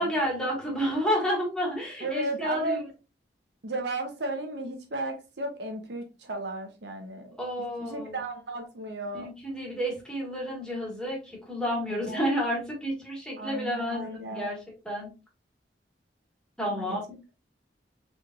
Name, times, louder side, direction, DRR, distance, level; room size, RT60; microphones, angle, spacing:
voice 1, 0.0-2.8 7.4-8.2 9.1-14.6 14.8-15.1 16.6-17.0, equal, 5° left, 1.6 m, -30 dB
voice 2, 2.0-2.8 3.6-7.4 7.8-9.3 11.9-12.3 13.4-14.5 16.7-17.0, right 2 dB, 75° right, 0.8 m, -34 dB
4.1 x 3.4 x 2.4 m
head